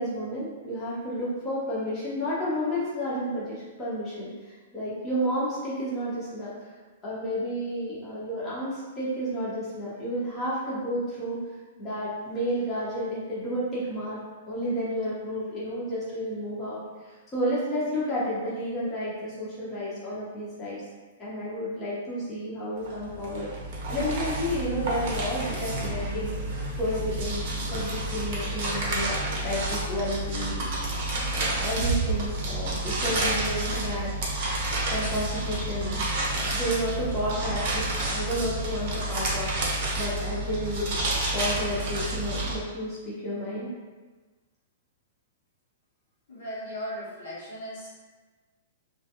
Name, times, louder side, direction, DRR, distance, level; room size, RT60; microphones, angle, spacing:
voice 1, 0.0-6.5 7.0-11.4 11.8-14.2 14.5-20.8 21.2-23.5 23.9-26.3 26.8-29.2 29.4-30.7 31.3-34.1 34.8-36.0 36.5-43.7, equal, 20° left, -9 dB, 0.8 m, -31 dB
sound 1, 22.9-42.6, right 2 dB, 50° right, 0.7 m, -30 dB
voice 2, 46.3-48.0, equal, 60° left, -8 dB, 1.0 m, -37 dB
2.4 x 2.3 x 2.8 m, 1.3 s
figure-of-eight pair, 105°, 0 cm